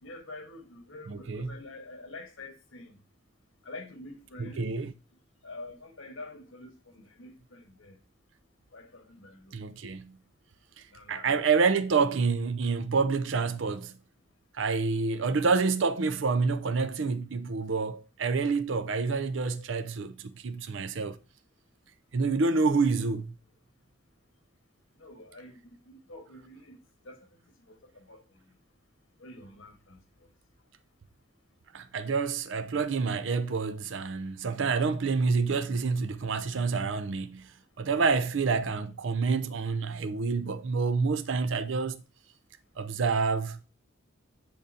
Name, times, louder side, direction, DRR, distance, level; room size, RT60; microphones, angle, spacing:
voice 1, 0.0-3.0 3.6-4.6 5.4-8.0 8.7-9.6 10.9-11.4 25.0-26.8 27.0-27.3 27.7-28.4 29.2-30.0, left 2 dB, 85° left, 1.4 m, -47 dB
voice 2, 1.1-1.5 4.4-4.9 9.5-10.2 11.1-13.9 14.6-21.2 22.1-23.3 31.7-37.5 37.8-42.0 42.8-43.6, right 4 dB, 70° right, 0.5 m, -28 dB
10.0 x 3.9 x 2.7 m
head